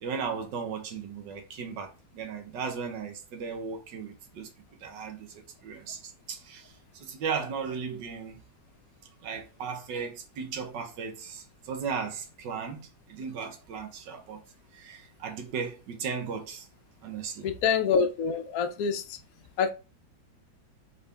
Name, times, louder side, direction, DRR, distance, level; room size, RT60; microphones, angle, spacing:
voice 1, 0.0-4.5 4.8-8.4 9.2-14.4 14.7-16.7 17.0-17.5, right 6 dB, 75° right, 1.6 m, -36 dB
voice 2, 17.4-19.0 19.6-19.7, left 6 dB, 65° left, 0.9 m, -26 dB
4.1 x 3.7 x 3.4 m
omnidirectional pair, 2.0 m